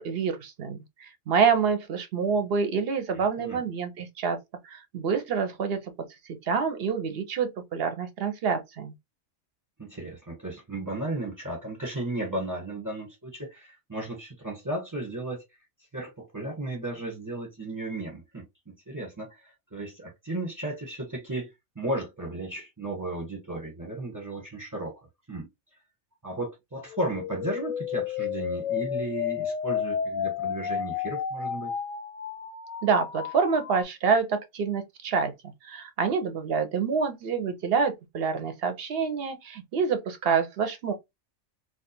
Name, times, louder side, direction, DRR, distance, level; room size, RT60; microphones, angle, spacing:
voice 1, 0.0-4.4 4.6-5.8 6.4-8.9 32.8-35.3 35.6-40.9, right 5 dB, 60° right, 0.7 m, -27 dB
voice 2, 3.1-3.6 9.8-15.4 15.9-18.4 18.9-25.0 25.3-25.5 26.2-31.7, right 1 dB, 15° right, 1.0 m, -34 dB
sound 1, 26.9-33.8, left 8 dB, 85° left, 1.0 m, -32 dB
2.3 x 2.2 x 2.8 m
omnidirectional pair, 1.3 m